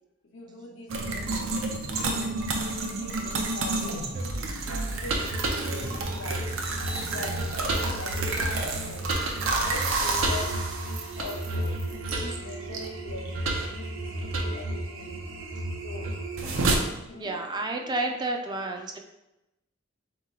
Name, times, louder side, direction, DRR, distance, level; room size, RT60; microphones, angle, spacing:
voice 1, 0.3-4.1 4.6-10.6 11.1-15.2 15.8-16.1 17.1-17.4 17.7-18.0 18.6-18.7, left 2 dB, 75° left, 2 dB, 0.7 m, -43 dB
sound 1, 0.9-16.8, right 2 dB, 90° right, 0.6 m, -29 dB
sound 2, 3.7-7.8, equal, 70° right, 1.2 m, -47 dB
voice 2, 17.2-19.0, right 2 dB, 20° right, 3 dB, 0.3 m, -30 dB
3.9 x 2.9 x 3.7 m, 0.94 s
head